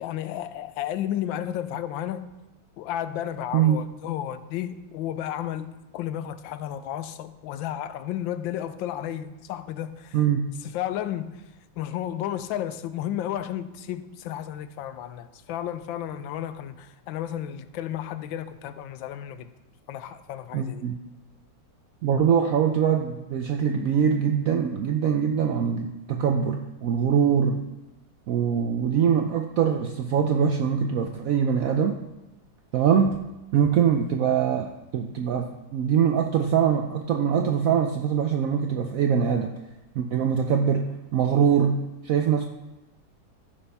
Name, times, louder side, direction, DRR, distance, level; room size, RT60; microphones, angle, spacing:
voice 1, 0.0-2.3 2.8-10.2 10.6-19.5 19.9-20.9, left 11 dB, 80° left, 1.3 m, -33 dB
voice 2, 10.1-10.5 20.5-21.0 22.0-27.6 28.3-32.0 32.7-33.2 33.5-39.5 39.9-42.4, right 7 dB, 75° right, 0.7 m, -23 dB
14.5 x 6.9 x 3.5 m
omnidirectional pair, 2.1 m